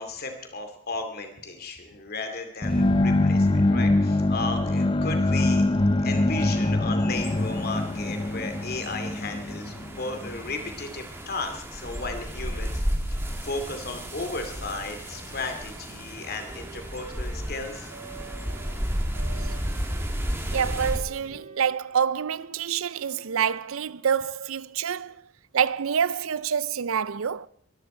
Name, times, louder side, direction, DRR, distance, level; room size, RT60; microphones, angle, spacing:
voice 1, 0.0-5.7 6.0-13.2 13.4-17.9, left 3 dB, 45° left, 2.6 m, -35 dB
sound 1, 2.6-10.4, left 2 dB, 25° left, 0.7 m, -24 dB
sound 2, 7.1-21.0, equal, 10° right, 2.0 m, -33 dB
Wind instrument woodwind instrument, 14.9-18.8 19.1-23.5, right 4 dB, 85° right, 3.9 m, -50 dB
voice 2, 20.5-25.2 25.5-27.5, right 7 dB, 70° right, 0.5 m, -27 dB
23.0 x 13.0 x 4.5 m
head